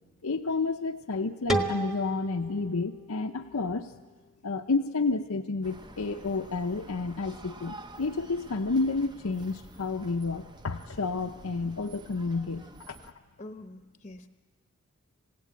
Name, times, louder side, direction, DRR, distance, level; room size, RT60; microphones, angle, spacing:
voice 1, 0.2-3.9 4.4-13.0, left 3 dB, 80° left, 3 dB, 0.8 m, -30 dB
sound 1, 1.5-4.3, right 1 dB, ahead, 1.2 m, -34 dB
sound 2, 5.6-13.1, right 2 dB, 20° right, 0.8 m, -49 dB
voice 2, 13.4-14.3, left 1 dB, 30° left, 7 dB, 0.9 m, -45 dB
28.0 x 17.0 x 8.8 m, 1.4 s
head